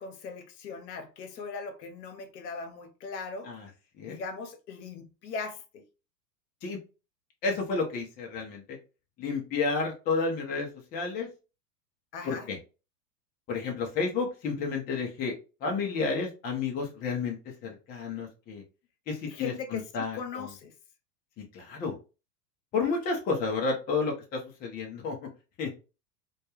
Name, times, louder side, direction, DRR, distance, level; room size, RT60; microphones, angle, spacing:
voice 1, 0.0-3.5 4.0-5.8 12.1-12.5 19.3-20.7, left 4 dB, 75° left, 0.8 m, -39 dB
voice 2, 7.4-8.8 9.2-11.3 12.2-12.6 13.5-15.3 15.6-17.4 17.6-18.6 19.1-20.5 21.5-21.9 22.7-25.2 25.6-25.7, left 4 dB, 20° left, 0.5 m, -31 dB
2.3 x 2.2 x 2.9 m
hypercardioid pair, 105°, 50 cm